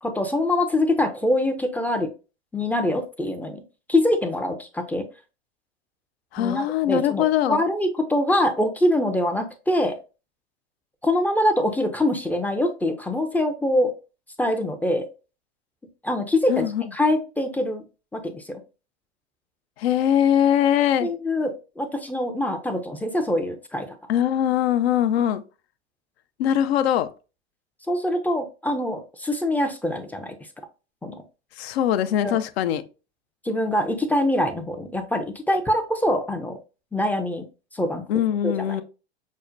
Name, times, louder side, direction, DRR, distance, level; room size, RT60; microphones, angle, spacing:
voice 1, 0.0-2.1 2.5-3.6 3.9-5.1 6.4-10.0 11.0-13.9 14.4-15.1 16.0-17.8 18.1-18.6 21.0-23.9 27.9-30.4 31.0-31.2 32.2-32.4 33.4-36.6 36.9-37.5 37.7-38.0 38.4-38.8, left 1 dB, 5° left, 0.4 m, -24 dB
voice 2, 6.3-7.6 16.5-16.8 19.8-21.1 24.1-25.4 26.4-27.1 31.6-32.8 38.1-38.8, left 10 dB, 65° left, 0.6 m, -21 dB
6.3 x 2.1 x 2.5 m
hypercardioid pair, 95°, 33 cm